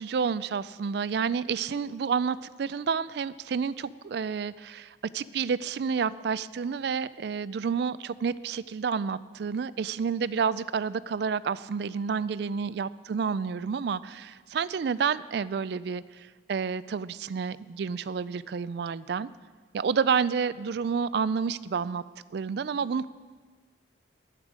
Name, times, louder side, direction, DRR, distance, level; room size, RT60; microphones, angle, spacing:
voice 1, 0.0-19.3 19.7-22.0 22.3-23.1, right 6 dB, 55° right, 17 dB, 0.3 m, -29 dB
12.0 x 11.0 x 5.0 m, 1.4 s
head